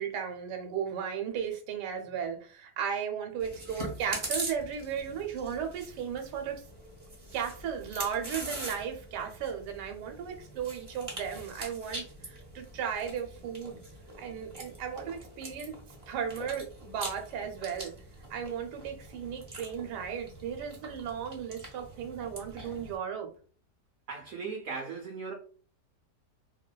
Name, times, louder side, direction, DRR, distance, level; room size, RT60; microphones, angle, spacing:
voice 1, 0.0-6.6 7.3-13.8 14.2-15.8 16.1-17.9 18.3-23.3, right 7 dB, 85° right, 1.2 m, -35 dB
Chewing mastication, 3.4-23.0, right 2 dB, 40° right, 0.4 m, -43 dB
voice 2, 24.1-25.3, right 5 dB, 70° right, 0.8 m, -37 dB
2.7 x 2.2 x 2.2 m
omnidirectional pair, 1.8 m